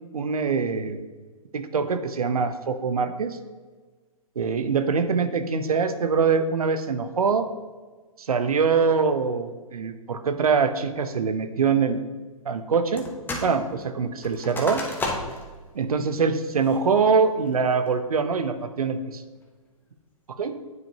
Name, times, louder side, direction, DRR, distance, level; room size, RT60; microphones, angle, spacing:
voice 1, 0.1-1.1 1.5-3.4 4.4-7.5 8.2-12.0 12.5-13.1 13.4-14.9 15.7-19.2 20.4-20.6, right 5 dB, 80° right, 10 dB, 0.7 m, -24 dB
sound 1, 13.0-13.5 13.8-15.5 16.0-16.1 16.6-17.0 17.5-17.9, left 2 dB, 10° left, 0.8 m, -32 dB
9.4 x 5.1 x 2.8 m, 1.4 s
hypercardioid pair, 125°, 19 cm